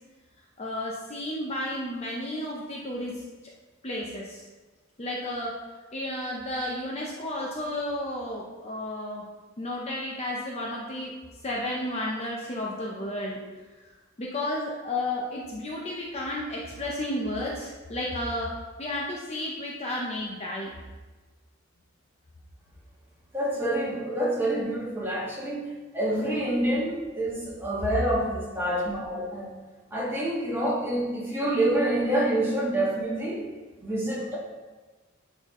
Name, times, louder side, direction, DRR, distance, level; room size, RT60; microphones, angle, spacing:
voice 1, 0.6-3.2 3.8-4.4 5.0-5.5 5.9-9.2 9.6-11.1 11.4-13.4 14.2-18.5 18.8-20.7, left 1 dB, 30° left, -3 dB, 0.7 m, -32 dB
voice 2, 23.3-25.6 25.9-29.5 29.9-33.4 33.8-34.4, right 1 dB, 10° right, -7 dB, 1.8 m, -27 dB
10.5 x 3.9 x 3.1 m, 1.3 s
head